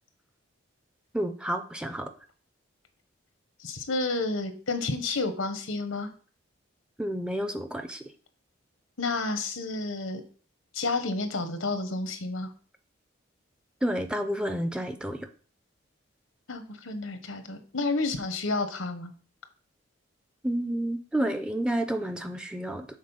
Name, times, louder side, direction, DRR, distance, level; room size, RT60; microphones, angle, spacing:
voice 1, 1.1-2.1 7.0-8.0 13.8-15.2 20.4-22.9, right 1 dB, 5° right, 8 dB, 0.5 m, -30 dB
voice 2, 3.6-6.1 9.0-10.2 10.7-12.5 16.5-19.1, left 3 dB, 85° left, 8 dB, 1.1 m, -30 dB
6.5 x 4.1 x 5.5 m, 0.42 s
head